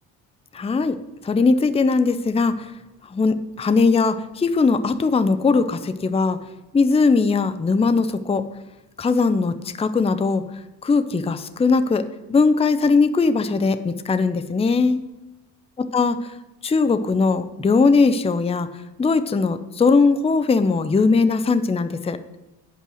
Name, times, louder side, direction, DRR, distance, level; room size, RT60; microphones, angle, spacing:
voice 1, 0.5-1.0 1.2-2.7 3.1-6.4 6.7-8.5 9.0-10.4 10.8-15.0 15.8-16.2 16.6-18.7 19.0-22.2, left 4 dB, 15° left, 11 dB, 0.5 m, -19 dB
8.5 x 5.5 x 6.2 m, 1.0 s
supercardioid pair, 75°, 42 cm